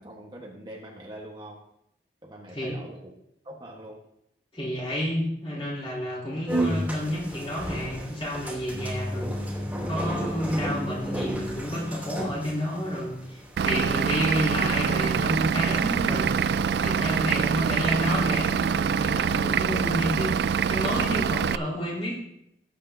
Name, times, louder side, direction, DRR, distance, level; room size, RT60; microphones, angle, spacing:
voice 1, 0.0-1.7 2.2-3.1 3.4-4.1, right 1 dB, 25° right, -1 dB, 1.4 m, -43 dB
voice 2, 4.5-9.3 9.8-22.2, equal, 30° left, -3 dB, 4.0 m, -30 dB
sound 1, 6.5-16.8, equal, 10° right, 3.0 m, -34 dB
Vehicle / Engine, 13.6-21.6, right 6 dB, 65° right, 0.3 m, -25 dB
18.0 x 8.3 x 2.8 m, 0.77 s
head